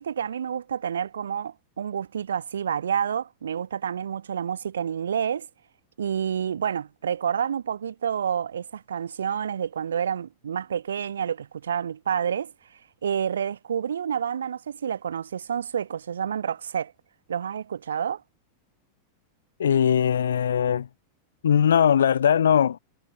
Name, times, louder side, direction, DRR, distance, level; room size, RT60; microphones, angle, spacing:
voice 1, 0.0-5.5 6.0-12.5 13.0-16.9 17.3-18.2, right 8 dB, 65° right, 0.9 m, -29 dB
voice 2, 19.6-20.9 21.4-22.8, left 8 dB, 65° left, 1.2 m, -20 dB
figure-of-eight pair, 90°, 0 cm